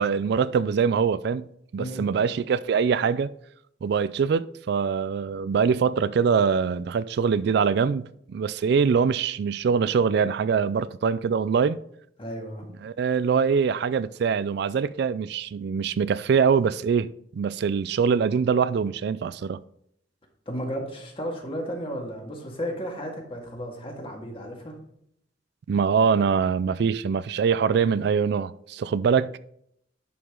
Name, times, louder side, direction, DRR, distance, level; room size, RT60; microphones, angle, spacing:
voice 1, 0.0-1.5 1.7-3.3 3.8-11.8 12.8-19.6 25.7-29.4, right 6 dB, 65° right, 0.3 m, -23 dB
voice 2, 1.8-2.1 12.2-12.6 20.5-24.8, equal, 30° left, 1.9 m, -34 dB
11.0 x 5.0 x 3.7 m
head